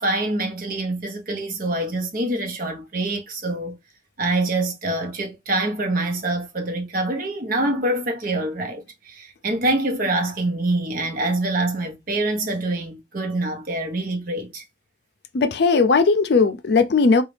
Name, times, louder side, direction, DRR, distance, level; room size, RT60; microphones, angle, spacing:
voice 1, 0.0-3.8 4.2-14.6, right 2 dB, 50° right, 0.9 m, -25 dB
voice 2, 15.3-17.2, left 4 dB, 60° left, 0.5 m, -17 dB
3.9 x 2.4 x 3.2 m
head